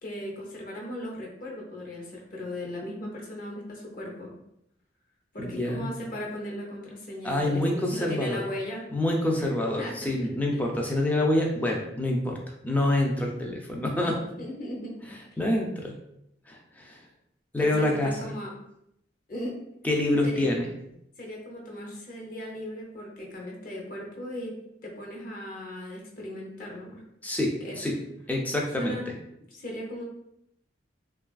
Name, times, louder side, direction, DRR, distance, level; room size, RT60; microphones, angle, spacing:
voice 1, 0.0-4.3 5.3-8.9 9.4-9.5 9.8-10.1 10.5-10.6 14.4-15.0 15.3-15.4 17.6-18.5 19.3-19.6 20.2-20.5 21.2-27.0 27.6-28.0 28.8-29.1 29.5-30.0, left 1 dB, 50° left, -2 dB, 0.7 m, -37 dB
voice 2, 5.4-5.9 7.2-8.4 8.9-12.4 12.6-14.2 15.4-16.0 16.5-17.0 17.5-18.2 19.8-20.7 27.2-28.0 28.3-29.0, left 1 dB, 10° left, 0 dB, 0.3 m, -26 dB
3.1 x 2.3 x 2.3 m, 0.79 s
head